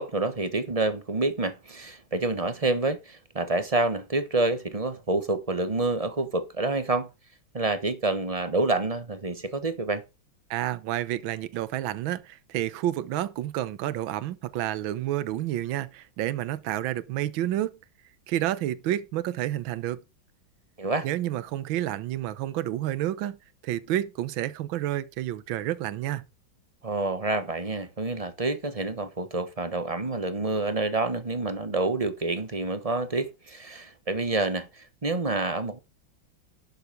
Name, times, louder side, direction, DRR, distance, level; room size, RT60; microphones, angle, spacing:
voice 1, 0.0-7.1 7.5-10.0 20.8-21.1 26.8-35.8, right 2 dB, 25° right, 1.0 m, -28 dB
voice 2, 10.5-17.8 18.3-20.0 21.0-23.4 23.6-26.2, right 13 dB, 75° right, 1.6 m, -29 dB
11.5 x 7.9 x 5.0 m
omnidirectional pair, 2.2 m